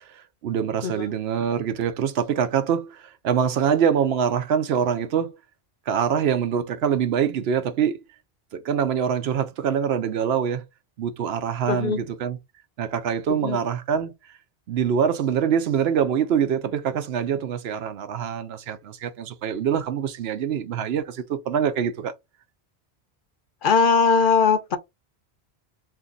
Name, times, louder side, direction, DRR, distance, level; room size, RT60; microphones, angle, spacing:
voice 1, 0.4-5.3 5.9-8.0 8.5-10.6 11.0-12.4 12.8-14.1 14.7-22.1, right 8 dB, 75° right, 0.8 m, -24 dB
voice 2, 11.7-12.0 13.3-13.6 23.6-24.8, left 5 dB, 60° left, 0.7 m, -20 dB
2.6 x 2.6 x 3.7 m
omnidirectional pair, 1.1 m